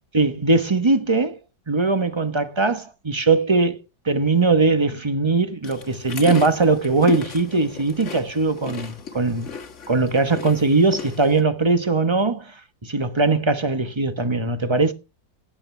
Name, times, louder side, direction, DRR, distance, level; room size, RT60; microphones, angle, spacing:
voice 1, 0.1-1.4 1.7-3.8 4.0-9.5 9.9-12.5 12.8-14.9, right 3 dB, 20° right, 0.9 m, -20 dB
sound 1, 5.6-11.4, left 7 dB, 40° left, 1.7 m, -35 dB
17.0 x 8.8 x 3.4 m
omnidirectional pair, 2.0 m